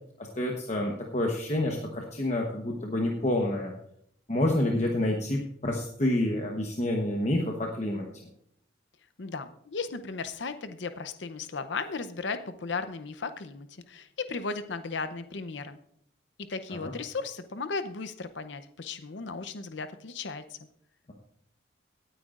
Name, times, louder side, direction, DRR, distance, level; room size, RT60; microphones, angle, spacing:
voice 1, 0.4-3.7 4.3-8.0 16.7-16.9, left 1 dB, 35° left, 0 dB, 1.1 m, -28 dB
voice 2, 9.2-15.8 16.4-20.6, left 4 dB, 70° left, 11 dB, 0.7 m, -36 dB
18.0 x 9.2 x 2.5 m, 0.70 s
head